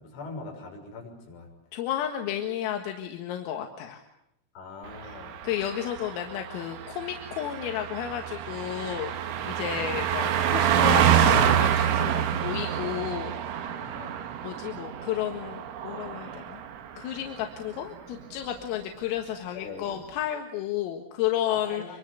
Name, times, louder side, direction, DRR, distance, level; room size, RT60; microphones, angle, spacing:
voice 1, 0.0-1.5 4.6-5.4 9.4-9.6 13.6-14.3 19.5-20.0 21.5-22.0, left 3 dB, 65° left, 2 dB, 8.5 m, -42 dB
voice 2, 1.7-4.0 5.0-5.2 5.4-13.3 14.4-16.6 17.0-21.8, left 10 dB, 85° left, 3 dB, 4.3 m, -32 dB
Car passing by, 4.9-16.9 17.2-17.4, right 9 dB, 75° right, 4.2 m, -27 dB
25.5 x 24.0 x 8.3 m, 0.84 s
omnidirectional pair, 5.9 m